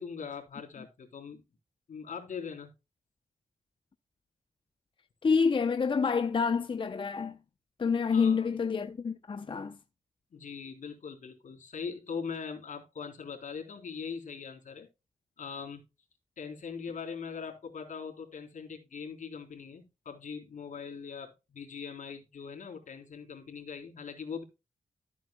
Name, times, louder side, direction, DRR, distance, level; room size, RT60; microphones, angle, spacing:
voice 1, 0.0-1.4 1.9-2.7 8.1-8.5 10.3-14.9 15.4-15.8 16.4-24.4, left 6 dB, 75° left, 3.7 m, -41 dB
voice 2, 5.2-7.4 7.8-9.8, left 5 dB, 40° left, 0.7 m, -28 dB
14.5 x 8.3 x 2.2 m
wide cardioid pair, 110°, 13 cm